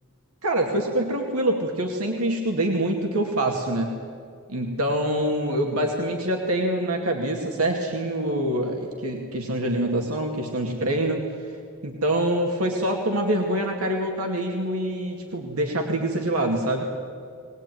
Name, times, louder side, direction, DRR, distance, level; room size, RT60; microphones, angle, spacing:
voice 1, 0.4-3.9 4.5-11.2 11.8-16.9, right 1 dB, 90° right, 2 dB, 2.4 m, -25 dB
22.0 x 20.0 x 9.4 m, 2.2 s
head